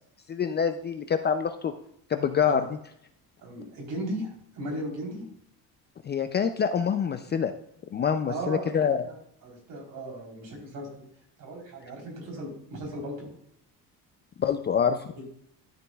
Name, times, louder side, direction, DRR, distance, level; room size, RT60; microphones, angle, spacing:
voice 1, 0.3-1.7 2.1-2.8 6.0-7.5 7.9-9.1 14.4-15.0, left 7 dB, 30° left, 8 dB, 0.4 m, -26 dB
voice 2, 3.4-4.3 4.5-5.2 8.3-8.7 9.0-9.2 9.4-11.1 11.4-13.3 15.2-15.3, right 1 dB, 60° right, -1 dB, 3.7 m, -36 dB
12.0 x 7.0 x 2.3 m, 0.71 s
cardioid pair, 160°, 37 cm